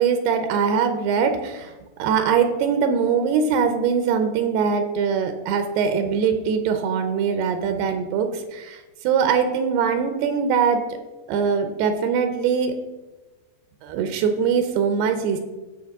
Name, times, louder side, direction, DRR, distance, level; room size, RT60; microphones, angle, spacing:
voice 1, 0.0-1.7 2.0-10.8 11.3-12.7 13.8-15.4, right 6 dB, 80° right, 7 dB, 2.7 m, -22 dB
15.5 x 5.1 x 3.5 m, 1.2 s
omnidirectional pair, 4.6 m